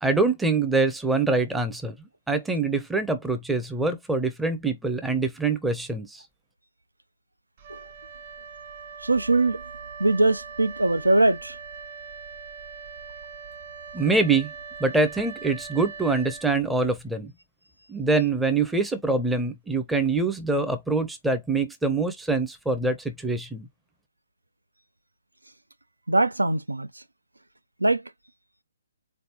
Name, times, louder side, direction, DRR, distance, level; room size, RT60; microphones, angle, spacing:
voice 1, 0.0-1.9 2.3-6.2 13.9-14.5 14.8-17.3 17.9-23.7, right 3 dB, 5° right, 0.6 m, -24 dB
Wind instrument woodwind instrument, 7.6-17.1, right 5 dB, 45° right, 1.2 m, -41 dB
voice 2, 9.0-9.6 10.0-11.6 26.1-26.9 27.8-28.0, right 2 dB, 80° right, 0.4 m, -21 dB
4.0 x 3.3 x 2.8 m
figure-of-eight pair, 135°, 0 cm